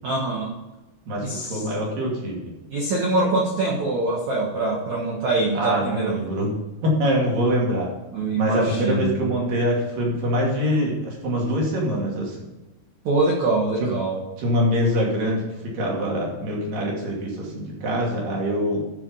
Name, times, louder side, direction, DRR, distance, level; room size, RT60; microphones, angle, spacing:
voice 1, 0.0-0.5 1.2-1.6 2.7-6.2 8.1-9.3 13.0-14.2, right 2 dB, 80° right, -3 dB, 1.6 m, -24 dB
voice 2, 1.1-2.5 5.5-6.5 6.8-7.9 8.3-12.4 13.8-13.9 14.4-18.8, equal, 50° right, -3 dB, 3.7 m, -24 dB
13.0 x 6.0 x 5.5 m, 1.1 s
omnidirectional pair, 5.8 m